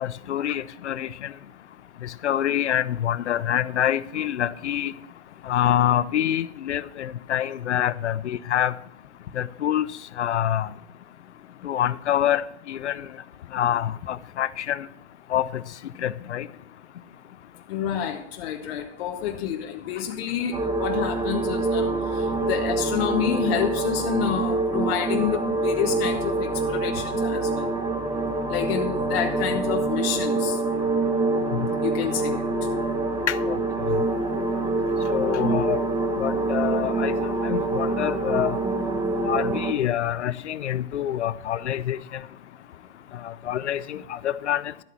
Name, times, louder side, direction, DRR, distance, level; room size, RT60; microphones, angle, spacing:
voice 1, 0.0-1.3 2.0-4.9 5.4-8.7 9.3-9.9 10.2-10.7 11.6-13.1 13.5-14.9 15.3-15.6 16.0-16.5 31.5-31.6 33.3-34.0 35.1-35.8 36.2-38.6 39.3-42.2 43.2-44.7, left 11 dB, 80° left, 0.7 m, -26 dB
voice 2, 17.7-27.7 28.5-30.6 31.8-32.5, left 9 dB, 60° left, 1.1 m, -28 dB
sound 1, 20.5-39.7, right 3 dB, 10° right, 1.3 m, -25 dB
12.5 x 8.3 x 4.5 m
hypercardioid pair, 110°, 34 cm